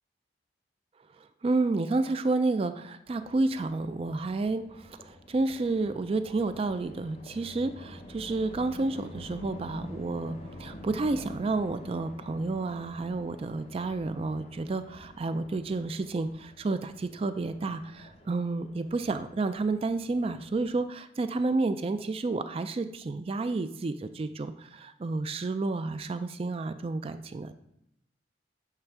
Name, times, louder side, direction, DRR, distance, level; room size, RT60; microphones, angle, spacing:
voice 1, 1.2-27.5, right 3 dB, 30° right, 10 dB, 0.3 m, -30 dB
sound 1, 3.1-20.7, left 1 dB, 35° left, 0.9 m, -48 dB
8.7 x 3.5 x 5.9 m, 0.79 s
head